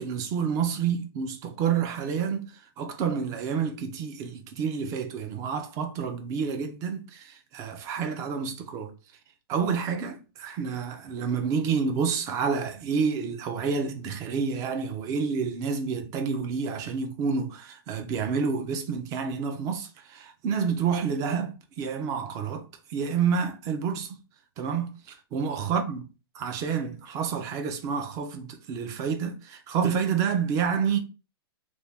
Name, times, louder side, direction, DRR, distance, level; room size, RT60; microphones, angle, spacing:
voice 1, 0.0-8.9 9.5-24.2 24.6-26.0 26.4-31.0, right 6 dB, 25° right, 0.4 m, -29 dB
2.6 x 2.2 x 3.4 m
hypercardioid pair, 155°, 13 cm